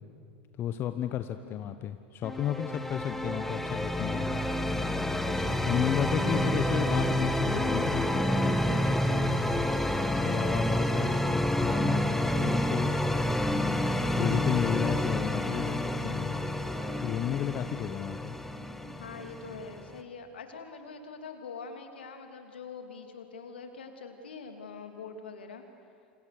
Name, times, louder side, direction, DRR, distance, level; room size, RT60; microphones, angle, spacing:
voice 1, 0.6-4.4 5.7-9.4 10.1-12.9 14.2-16.3 17.0-18.4, left 10 dB, 40° left, 9 dB, 1.1 m, -33 dB
voice 2, 1.4-1.7 5.3-5.9 19.0-25.6, left 5 dB, 75° left, 5 dB, 2.8 m, -44 dB
sound 1, 2.2-20.0, left 1 dB, 5° left, 1.6 m, -29 dB
sound 2, 14.4-15.2 16.0-17.1 18.3-19.0, right 7 dB, 55° right, 3.4 m, -52 dB
28.5 x 27.5 x 6.7 m, 2.4 s
figure-of-eight pair, 80°, 6 cm